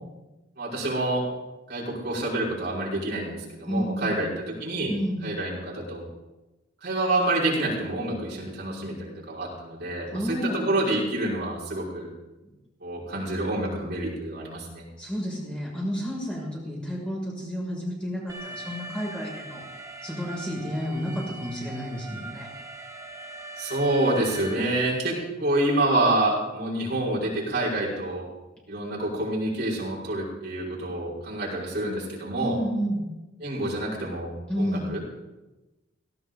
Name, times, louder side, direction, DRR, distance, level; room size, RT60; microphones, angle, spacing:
voice 1, 0.6-1.3 1.7-4.3 4.6-4.9 5.2-6.1 6.8-12.1 12.8-14.9 23.6-28.3 28.7-32.6 33.4-35.2, right 1 dB, 55° right, -6 dB, 5.3 m, -27 dB
voice 2, 3.6-4.2 4.9-5.2 10.1-10.6 15.0-19.6 20.0-22.5 32.4-33.1 34.5-34.9, equal, 5° left, -5 dB, 6.3 m, -30 dB
Alarm, 18.3-24.5, right 2 dB, 20° right, 2.1 m, -40 dB
18.5 x 18.0 x 3.9 m, 1.1 s
head